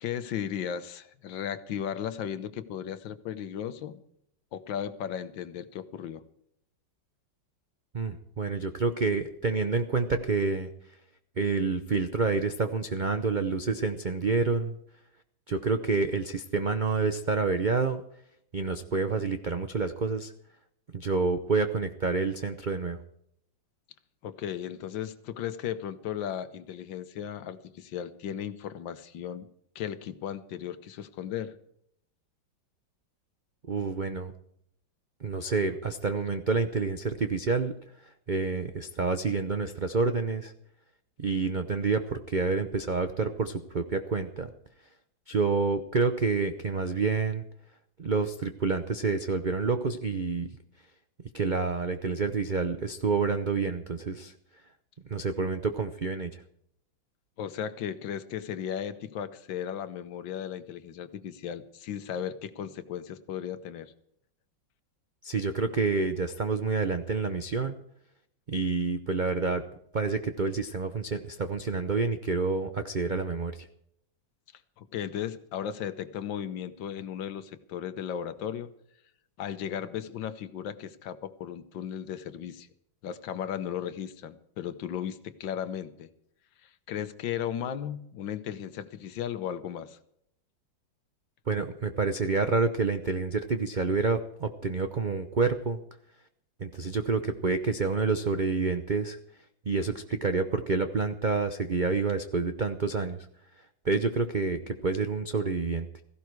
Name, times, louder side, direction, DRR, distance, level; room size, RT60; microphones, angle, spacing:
voice 1, 0.0-4.0 4.5-6.2 24.2-29.5 29.8-31.5 57.4-63.9 74.8-78.7 79.4-82.7 83.0-86.1 86.6-90.0, left 9 dB, 75° left, 12 dB, 1.6 m, -36 dB
voice 2, 7.9-10.7 11.4-14.8 15.5-18.0 18.5-20.3 20.9-23.0 33.7-34.3 35.2-37.7 38.3-40.5 41.2-44.5 45.3-47.4 48.0-50.5 51.3-54.3 55.1-56.4 65.2-67.8 68.5-69.6 69.9-73.7 91.5-95.8 96.6-99.2 99.7-103.2 103.8-106.0, right 4 dB, 80° right, 8 dB, 0.4 m, -28 dB
16.5 x 15.5 x 4.7 m, 0.73 s
omnidirectional pair, 2.1 m